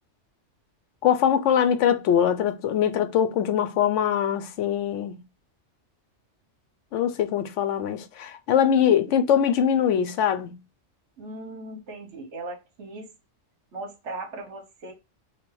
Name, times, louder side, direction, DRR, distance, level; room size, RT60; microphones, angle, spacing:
voice 1, 1.0-5.2 6.9-10.6, left 9 dB, 80° left, 0.9 m, -22 dB
voice 2, 11.2-13.1 13.7-14.9, right 2 dB, 70° right, 1.2 m, -38 dB
4.3 x 2.4 x 4.6 m
omnidirectional pair, 1.3 m